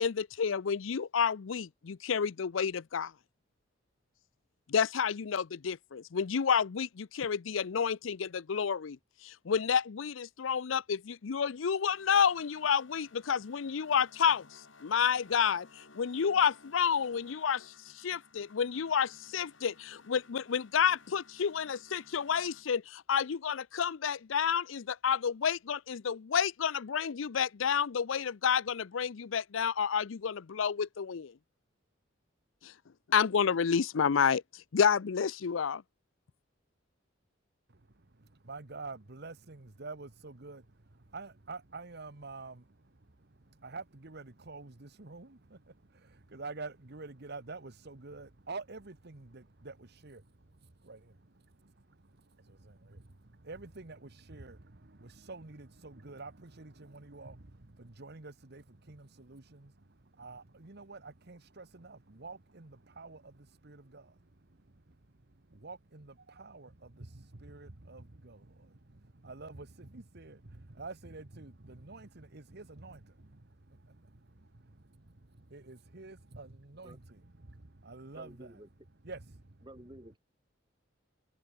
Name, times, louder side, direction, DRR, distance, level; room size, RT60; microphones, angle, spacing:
voice 1, 0.0-3.1 4.7-31.3 32.6-32.7 33.1-35.8, left 7 dB, 90° left, 0.5 m, -30 dB
sound 1, 11.6-22.7, left 3 dB, 75° left, 3.2 m, -59 dB
voice 2, 38.4-40.6 41.1-42.6 43.6-50.2 50.8-51.2 51.6-51.7 52.4-59.7 60.2-64.2 65.5-74.2 74.6-75.1 75.5-78.5 79.0-79.5, right 3 dB, 55° right, 1.4 m, -48 dB
voice 3, 78.1-78.7 79.6-80.2, right 1 dB, 25° right, 6.8 m, -51 dB
head